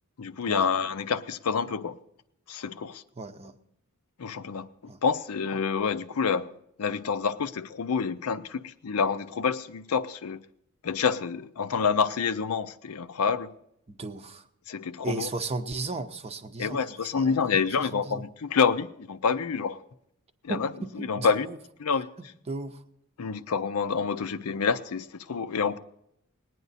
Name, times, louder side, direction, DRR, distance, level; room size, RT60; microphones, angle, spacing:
voice 1, 0.2-2.0 2.5-3.0 4.2-4.7 5.0-6.5 6.8-10.4 10.8-13.5 14.7-15.3 16.6-19.8 20.4-20.7 21.0-21.5 21.8-22.1 23.2-25.8, left 6 dB, 75° left, 0.5 m, -27 dB
voice 2, 3.2-3.5 4.9-5.0 13.9-14.4 15.0-18.2 20.5-21.6 22.5-22.8, right 3 dB, 30° right, 0.7 m, -35 dB
19.5 x 9.3 x 4.1 m
head